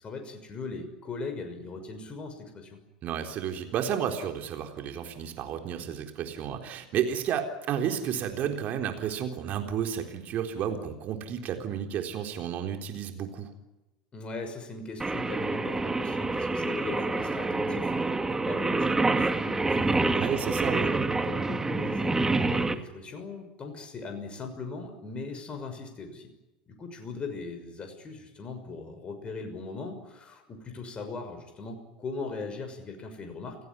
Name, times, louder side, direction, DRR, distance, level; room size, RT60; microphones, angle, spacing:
voice 1, 0.0-2.8 14.1-20.5 21.2-26.3 26.8-33.6, left 3 dB, 25° left, 5 dB, 6.2 m, -39 dB
voice 2, 3.0-13.5 20.1-21.0, right 8 dB, 40° right, 5 dB, 3.9 m, -32 dB
Singing, 15.0-22.7, right 3 dB, 10° right, 2.3 m, -27 dB
29.5 x 17.5 x 10.0 m, 1.0 s
figure-of-eight pair, 80°, 4 cm